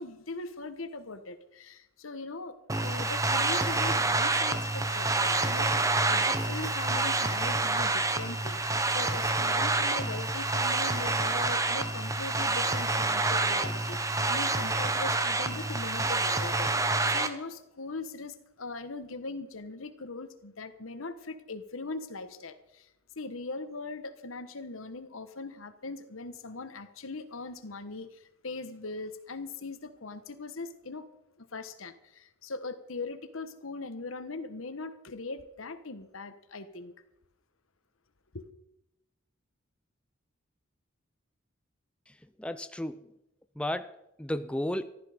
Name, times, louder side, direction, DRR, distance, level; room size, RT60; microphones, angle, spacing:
voice 1, 0.0-22.9 23.2-31.1 31.4-36.9 38.3-38.5, left 3 dB, 85° left, 11 dB, 1.3 m, -40 dB
sound 1, 2.7-17.3, right 2 dB, 15° right, 0.9 m, -28 dB
voice 2, 42.1-43.1 43.6-44.9, left 1 dB, 5° left, 11 dB, 0.4 m, -34 dB
14.5 x 13.5 x 5.1 m, 0.85 s
head